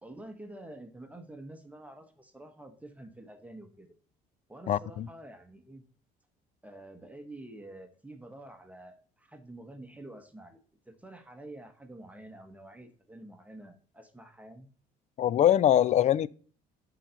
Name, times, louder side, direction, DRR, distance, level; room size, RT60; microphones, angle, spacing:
voice 1, 0.0-3.9 4.5-5.8 6.6-10.6 10.8-14.7, right 1 dB, 10° right, 1.0 m, -48 dB
voice 2, 4.7-5.1 15.2-16.3, left 11 dB, 45° left, 0.4 m, -23 dB
7.4 x 4.0 x 5.6 m
cardioid pair, 110°, 17 cm